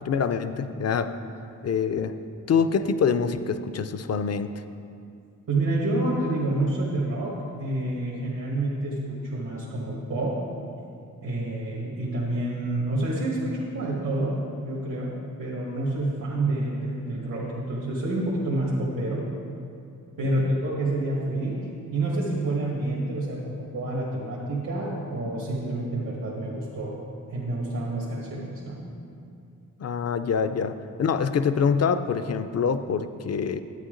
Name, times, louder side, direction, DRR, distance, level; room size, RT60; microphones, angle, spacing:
voice 1, 0.0-1.1 1.6-2.1 2.5-4.5 20.2-20.4 29.8-33.6, left 6 dB, 50° left, 10 dB, 0.5 m, -25 dB
voice 2, 5.5-10.4 11.2-14.4 14.6-15.1 15.4-19.2 20.2-27.0 27.3-28.8, right 2 dB, 75° right, -5 dB, 1.6 m, -28 dB
11.5 x 8.9 x 3.8 m, 2.5 s
wide cardioid pair, 155°, 32 cm